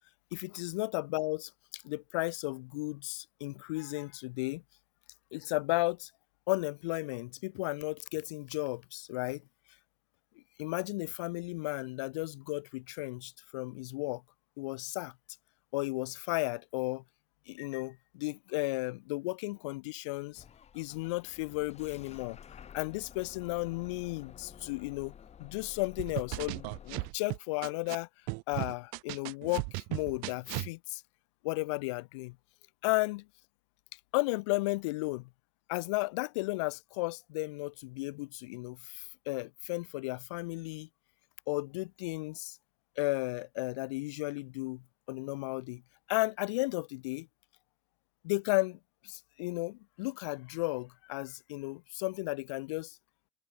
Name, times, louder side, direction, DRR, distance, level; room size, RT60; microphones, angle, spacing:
voice 1, 0.3-4.6 5.3-6.1 6.5-9.4 10.6-14.2 14.6-15.1 15.7-17.0 17.5-20.4 20.7-22.4 22.7-28.1 28.5-31.0 31.4-32.4 32.8-33.3 34.1-35.3 35.7-40.9 41.5-42.6 43.0-45.8 46.1-47.3 48.2-53.0, left 23 dB, 90° left, 0.6 m, -34 dB
Bus / Engine starting, 20.3-27.1, left 8 dB, 45° left, 3.1 m, -52 dB
sound 1, 26.0-28.0 28.3-30.7, right 38 dB, 80° right, 0.8 m, -36 dB
supercardioid pair, 70°, 15 cm